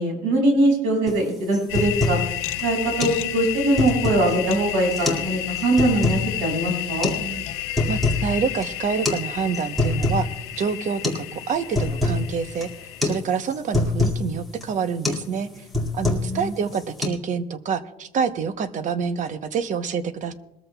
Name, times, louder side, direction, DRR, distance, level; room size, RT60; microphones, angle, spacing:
voice 1, 0.0-2.2 2.6-7.1 16.2-16.5, right 1 dB, 75° right, 2 dB, 5.8 m, -22 dB
sound 1, 1.1-1.2 1.5-2.3 2.6-2.7 3.0-3.2 3.6-4.3 4.9-5.3 5.6-6.2 7.0-7.2 7.6-8.3 8.6-8.7 9.1-9.2 9.5-10.3 10.6-10.7 11.0-11.3 11.5-12.2 12.6-12.8 13.0-13.2 13.5-14.2 14.6-14.8 15.0-15.3 15.6-16.4 16.7-17.1, left 2 dB, ahead, 2.0 m, -24 dB
sound 2, 1.7-13.2, left 14 dB, 85° left, 0.9 m, -31 dB
voice 2, 7.9-10.3 10.5-12.7 13.0-15.7 15.9-20.3, right 6 dB, 35° right, 11 dB, 0.8 m, -27 dB
21.5 x 14.0 x 2.3 m, 0.89 s
cardioid pair, 150°, 21 cm